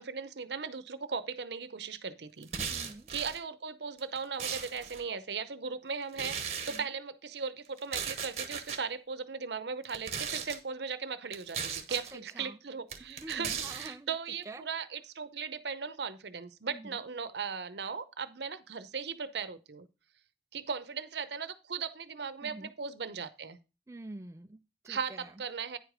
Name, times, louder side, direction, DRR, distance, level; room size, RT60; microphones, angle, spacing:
voice 1, 0.0-2.5 3.1-19.9 20.5-23.6 24.9-25.8, right 5 dB, 75° right, 13 dB, 0.7 m, -38 dB
sound 1, 2.4-3.4 4.0-5.0 6.1-6.8 7.8-8.8 9.8-10.6 11.3-12.1 12.9-13.9, right 7 dB, 35° right, 1.0 m, -37 dB
voice 2, 2.7-3.1 6.7-6.9 11.9-12.6 13.0-14.1 14.5-14.7 16.7-17.0 22.4-22.7 23.9-25.3, right 2 dB, 15° right, 7 dB, 0.3 m, -47 dB
9.7 x 4.9 x 5.0 m, 0.30 s
head